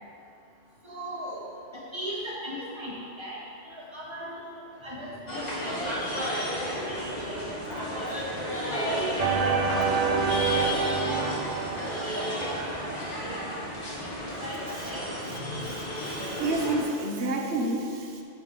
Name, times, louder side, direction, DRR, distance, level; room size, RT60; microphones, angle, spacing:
voice 1, 0.8-7.4 7.8-11.6 12.0-14.1 14.4-14.6 14.8-15.0 15.3-15.7, equal, 25° right, -6 dB, 1.7 m, -39 dB
sound 1, 5.3-16.8, equal, 35° left, 1.8 m, -32 dB
sound 2, 9.2-12.7, right 5 dB, 55° right, 0.4 m, -27 dB
voice 2, 16.0-18.2, right 2 dB, 75° right, 2 dB, 1.1 m, -29 dB
8.5 x 5.2 x 4.8 m, 2.5 s
omnidirectional pair, 1.2 m